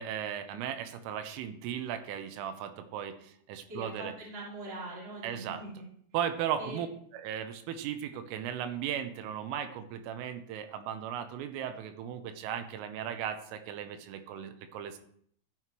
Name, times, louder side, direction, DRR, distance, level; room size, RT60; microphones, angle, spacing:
voice 1, 0.0-4.1 5.2-5.6 6.1-6.9 7.1-15.0, right 9 dB, 80° right, 9 dB, 3.2 m, -36 dB
voice 2, 3.7-5.8 6.6-6.8, right 1 dB, 25° right, -5 dB, 1.3 m, -42 dB
12.5 x 7.6 x 3.1 m, 0.64 s
omnidirectional pair, 6.0 m